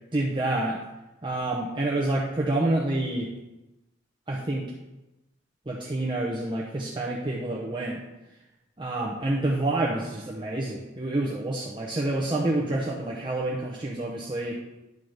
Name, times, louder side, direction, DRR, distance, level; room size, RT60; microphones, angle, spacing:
voice 1, 0.1-0.8 1.2-3.3 4.3-4.7 5.7-8.0 8.8-14.6, right 2 dB, 25° right, -3 dB, 0.9 m, -28 dB
10.5 x 3.8 x 6.4 m, 1.0 s
head